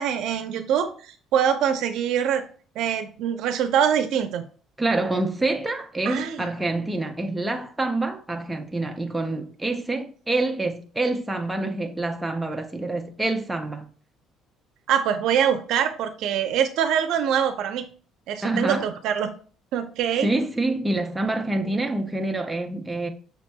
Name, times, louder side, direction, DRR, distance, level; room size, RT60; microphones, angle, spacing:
voice 1, 0.0-2.4 2.8-4.4 6.0-6.5 14.9-17.9 18.3-19.3 19.7-20.3, right 8 dB, 70° right, 0.5 m, -24 dB
voice 2, 4.8-13.9 18.4-18.9 20.1-23.1, right 2 dB, 5° right, 0.4 m, -26 dB
6.0 x 2.9 x 2.2 m
cardioid pair, 145°, 0 cm